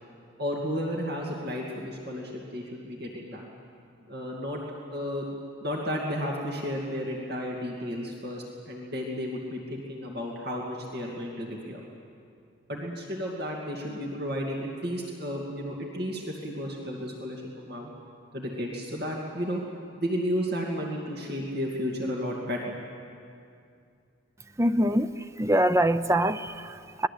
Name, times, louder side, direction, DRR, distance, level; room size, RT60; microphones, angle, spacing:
voice 1, 0.4-3.5 4.1-4.6 4.9-5.3 5.6-11.8 12.7-17.9 18.3-19.6 20.0-22.7, equal, 55° right, -2 dB, 2.5 m, -33 dB
voice 2, 24.6-27.1, right 1 dB, 15° right, 11 dB, 0.5 m, -24 dB
25.5 x 20.5 x 8.6 m, 2.4 s
head